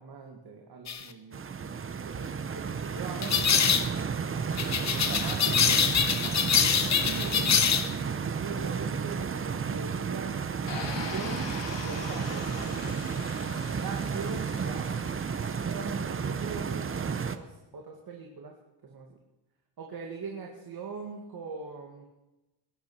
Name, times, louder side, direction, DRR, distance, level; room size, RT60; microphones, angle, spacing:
voice 1, 0.0-1.5 1.9-3.7 4.3-5.9 6.2-7.8 8.2-10.4 10.7-13.1 13.7-18.6 18.8-19.2 19.8-22.0, right 5 dB, 50° right, 0 dB, 2.1 m, -41 dB
sound 1, 0.9-1.0 3.2-3.9 4.6-7.9, left 7 dB, 35° left, 0.9 m, -25 dB
Stream, 1.3-17.4, right 6 dB, 25° right, 0.7 m, -32 dB
sound 2, 10.7-15.7, left 7 dB, 65° left, 2.0 m, -42 dB
20.5 x 10.5 x 6.1 m, 1.0 s
wide cardioid pair, 160°, 47 cm